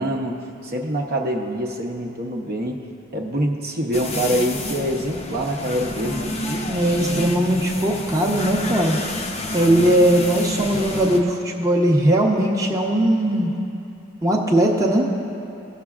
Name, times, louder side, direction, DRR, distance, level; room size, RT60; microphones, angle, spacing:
voice 1, 0.0-2.8 3.1-6.3, equal, 45° right, 1 dB, 0.8 m, -25 dB
sound 1, 3.9-11.2, left 1 dB, 30° left, 0.6 m, -29 dB
voice 2, 6.7-9.0 9.5-13.5 14.2-15.1, right 1 dB, 15° right, -2 dB, 0.8 m, -19 dB
20.0 x 6.9 x 2.4 m, 2.8 s
head